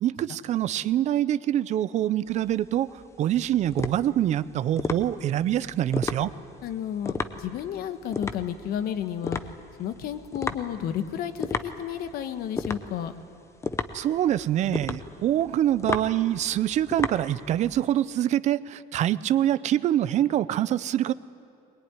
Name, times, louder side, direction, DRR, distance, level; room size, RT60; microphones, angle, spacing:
voice 1, 0.0-2.9 3.2-6.3 13.9-21.1, right 12 dB, 40° right, 16 dB, 0.5 m, -25 dB
sound 1, 2.3-17.8, left 4 dB, 15° left, 0.7 m, -34 dB
voice 2, 6.6-9.4 9.8-13.1, left 9 dB, 55° left, 9 dB, 1.3 m, -32 dB
21.5 x 21.0 x 9.8 m, 2.5 s
cardioid pair, 175°, 18 cm